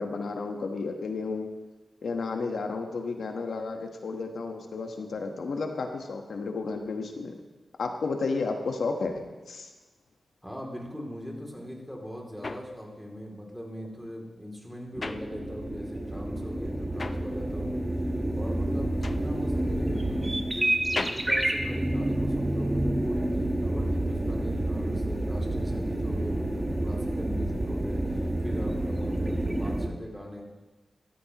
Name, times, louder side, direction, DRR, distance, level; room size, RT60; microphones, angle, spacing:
voice 1, 0.0-1.5 2.0-7.4 7.8-9.7, left 4 dB, 85° left, 4 dB, 1.2 m, -32 dB
voice 2, 10.4-17.8 18.3-30.4, equal, ahead, -1 dB, 2.7 m, -40 dB
sound 1, 11.7-16.0 16.3-22.5, left 3 dB, 45° left, 0.6 m, -40 dB
sound 2, 14.9-29.9, right 1 dB, 20° right, 1.3 m, -29 dB
14.5 x 13.0 x 3.0 m, 1.2 s
wide cardioid pair, 80°, 0 cm